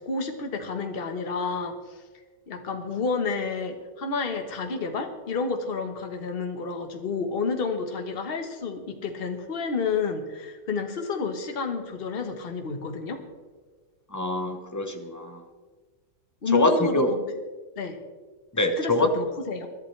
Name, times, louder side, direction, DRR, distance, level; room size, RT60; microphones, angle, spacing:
voice 1, 0.0-2.0 2.5-13.2 16.4-17.3 17.8-18.0 18.8-19.7, left 4 dB, 35° left, 5 dB, 1.3 m, -30 dB
voice 2, 14.1-15.4 16.5-17.1 18.5-19.1, left 2 dB, 15° left, 4 dB, 0.9 m, -24 dB
23.0 x 11.5 x 3.3 m, 1.4 s
omnidirectional pair, 1.8 m